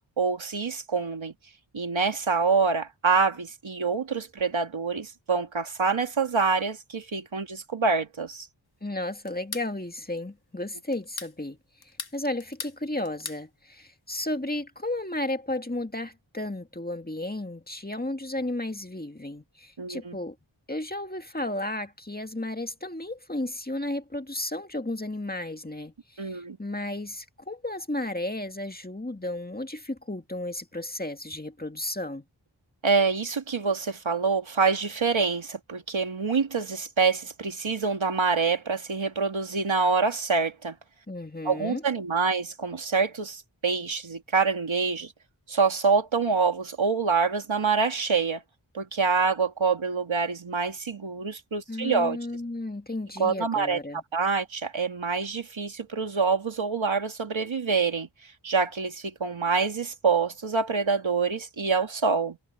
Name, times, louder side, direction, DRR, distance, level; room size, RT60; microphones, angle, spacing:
voice 1, 0.2-1.3 1.7-8.5 19.8-20.2 26.2-26.6 32.8-40.8 41.4-45.1 45.5-48.4 48.7-52.2 53.2-53.8 54.1-58.1 58.4-62.4, right 5 dB, 85° right, 2.2 m, -26 dB
voice 2, 8.8-11.6 12.1-20.4 20.7-32.2 41.1-41.8 51.7-54.0, left 1 dB, 20° left, 1.9 m, -33 dB
sound 1, 9.3-9.7 10.9-11.4 11.8-12.8 13.0-13.4, left 4 dB, 55° left, 1.8 m, -38 dB
wide cardioid pair, 50°, 46 cm